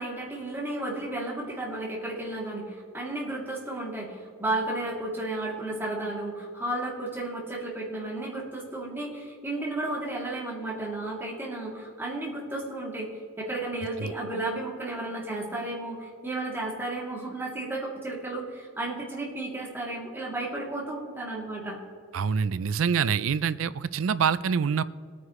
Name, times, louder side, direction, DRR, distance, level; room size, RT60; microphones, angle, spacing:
voice 1, 0.0-13.1 13.4-21.8, right 2 dB, 10° right, -5 dB, 2.9 m, -33 dB
voice 2, 22.1-24.8, right 6 dB, 75° right, 17 dB, 0.4 m, -25 dB
20.0 x 9.5 x 3.2 m, 2.1 s
head